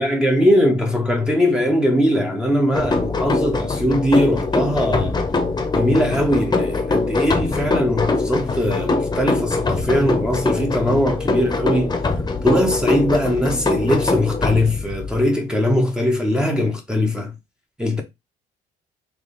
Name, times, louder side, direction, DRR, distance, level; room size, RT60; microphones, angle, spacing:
voice 1, 0.0-5.2 5.7-11.9 12.4-17.3 17.8-18.0, left 1 dB, 5° right, 0.8 m, -20 dB
sound 1, 2.7-15.2, left 3 dB, 25° left, 0.9 m, -23 dB
3.5 x 3.0 x 4.0 m
cardioid pair, 110°, 17 cm